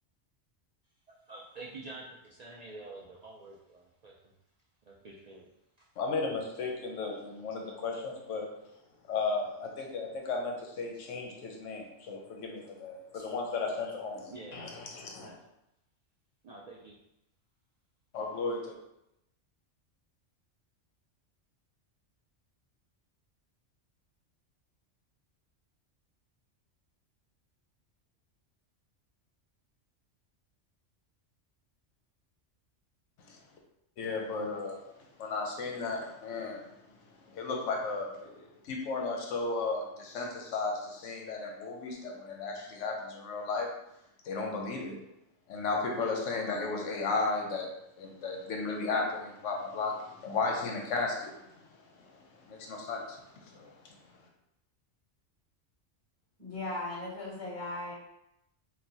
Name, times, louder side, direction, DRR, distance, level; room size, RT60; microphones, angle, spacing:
voice 1, 1.1-4.1 4.9-5.5 5.8-5.9 13.1-13.2 14.3-14.6 15.2-15.4 16.4-16.9, right 2 dB, 80° right, -4 dB, 0.3 m, -47 dB
voice 2, 6.0-8.5 9.1-15.3 18.1-18.8 33.3-33.4 34.0-34.8 35.2-36.6 37.3-43.7 44.2-45.0 45.5-47.7 48.0-51.5 52.4-53.9, left 3 dB, 85° left, 1 dB, 1.0 m, -34 dB
voice 3, 56.4-57.9, left 2 dB, 15° left, -9 dB, 1.1 m, -37 dB
4.3 x 2.1 x 2.7 m, 0.84 s
omnidirectional pair, 1.2 m